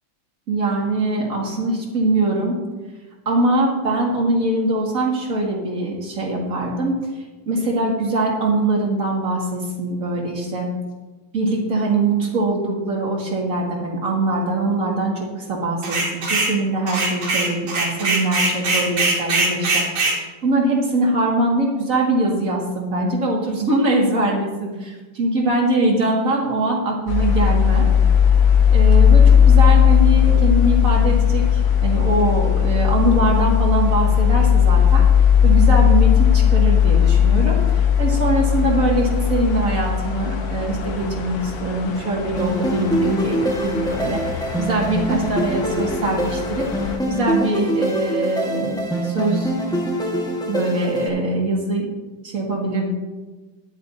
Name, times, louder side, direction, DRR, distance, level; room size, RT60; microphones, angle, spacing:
voice 1, 0.5-2.6 3.3-6.9 7.5-10.7 11.3-19.8 20.1-27.9 28.7-35.0 35.4-46.7 47.1-49.5 50.5-51.9 52.2-52.9, right 2 dB, 45° right, -2 dB, 2.4 m, -22 dB
sound 1, 15.8-16.6 16.9-20.2, right 2 dB, 85° right, 2.6 m, -21 dB
sound 2, 27.1-47.0, left 8 dB, 80° left, 1.9 m, -17 dB
sound 3, 42.4-51.1, right 1 dB, ahead, 1.2 m, -24 dB
14.0 x 10.5 x 2.7 m, 1.2 s
omnidirectional pair, 2.1 m